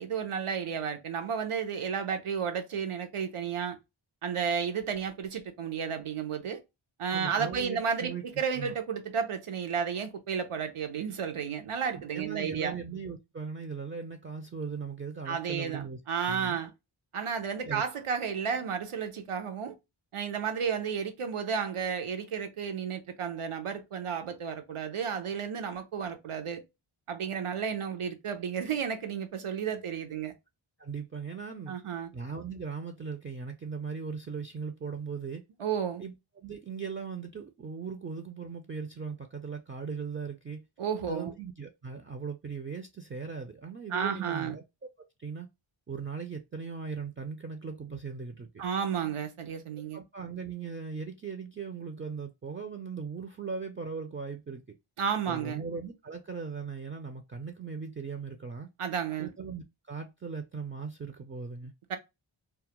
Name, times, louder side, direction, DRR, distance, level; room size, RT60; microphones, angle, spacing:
voice 1, 0.0-3.8 4.2-6.6 7.0-12.8 15.3-16.7 17.1-19.8 20.1-26.6 27.1-30.3 31.7-32.1 35.6-36.0 40.8-41.3 43.9-44.6 48.6-50.0 55.0-55.6 58.8-59.3 61.9-62.0, right 7 dB, 85° right, 0.7 m, -32 dB
voice 2, 7.1-8.2 8.5-8.7 11.8-16.0 16.3-16.6 17.6-17.8 30.8-31.8 32.1-35.4 36.0-40.6 41.1-44.6 45.2-45.5 45.9-48.5 49.9-54.8 55.3-58.7 59.2-61.7, right 5 dB, 30° right, 0.4 m, -38 dB
2.3 x 2.1 x 2.8 m
wide cardioid pair, 55°, 49 cm